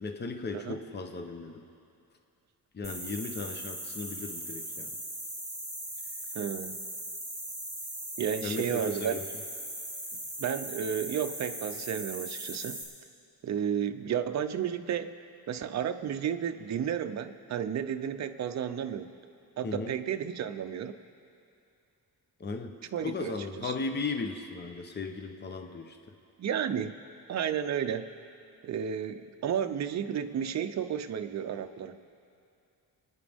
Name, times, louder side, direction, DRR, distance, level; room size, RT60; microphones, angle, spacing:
voice 1, 0.0-1.6 2.7-4.9 8.4-9.2 19.6-19.9 22.4-22.7 23.0-26.0, left 4 dB, 30° left, 6 dB, 0.7 m, -36 dB
sound 1, 2.8-12.8, right 1 dB, 10° left, 3.1 m, -39 dB
voice 2, 6.3-6.8 8.2-9.2 10.4-12.8 13.4-15.1 15.5-19.1 19.6-21.0 22.9-23.7 26.4-27.0 27.3-28.1 28.6-32.0, right 8 dB, 50° right, 8 dB, 0.5 m, -32 dB
28.5 x 9.7 x 3.5 m, 2.5 s
wide cardioid pair, 180°, 37 cm